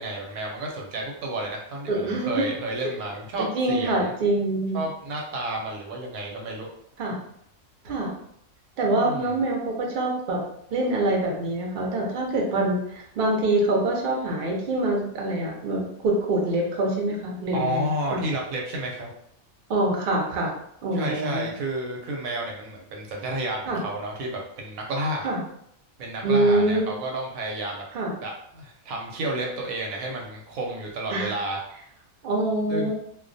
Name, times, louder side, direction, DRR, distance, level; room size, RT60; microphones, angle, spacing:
voice 1, 0.0-4.1 4.7-6.7 8.9-9.3 17.5-19.1 20.9-25.3 26.0-27.8 28.2-31.6 32.7-32.9, right 1 dB, 85° right, 0 dB, 1.0 m, -31 dB
voice 2, 1.9-2.4 3.4-4.8 7.0-7.2 7.8-8.1 8.8-10.4 10.7-18.2 19.7-20.5 20.8-21.5 23.7-23.8 25.2-25.4 26.2-26.9 27.9-28.1 31.1-31.4 32.2-32.9, right 2 dB, 55° right, -1 dB, 0.6 m, -25 dB
2.3 x 2.2 x 2.5 m, 0.71 s
omnidirectional pair, 1.5 m